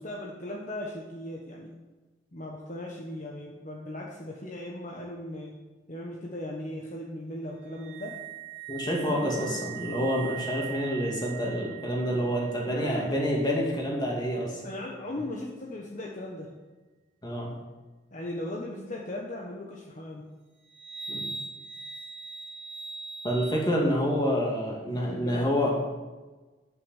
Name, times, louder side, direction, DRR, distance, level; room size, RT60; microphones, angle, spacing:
voice 1, 0.0-1.8 2.3-5.5 5.9-8.2 8.9-9.6 12.6-13.1 14.6-16.5 18.1-20.3 23.8-23.9 25.0-25.7, left 1 dB, 45° left, -2 dB, 1.4 m, -38 dB
sound 1, 7.7-13.9 20.6-23.6, right 6 dB, 65° right, 2.7 m, -41 dB
voice 2, 8.7-14.6 15.1-15.2 17.2-17.6 21.1-21.3 23.2-25.7, equal, 25° left, -2 dB, 2.7 m, -28 dB
11.0 x 6.8 x 7.4 m, 1.2 s
head